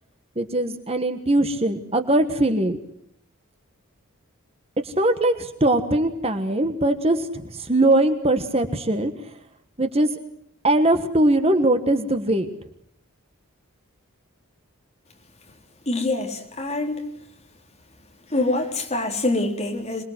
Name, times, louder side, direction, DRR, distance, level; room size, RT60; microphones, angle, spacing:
voice 1, 0.4-2.8 4.8-9.1 9.8-10.1 10.6-12.5, right 1 dB, 30° right, 7 dB, 1.5 m, -21 dB
voice 2, 15.9-17.0 18.3-20.0, left 2 dB, 30° left, 2 dB, 4.0 m, -25 dB
26.5 x 21.5 x 8.0 m, 0.71 s
head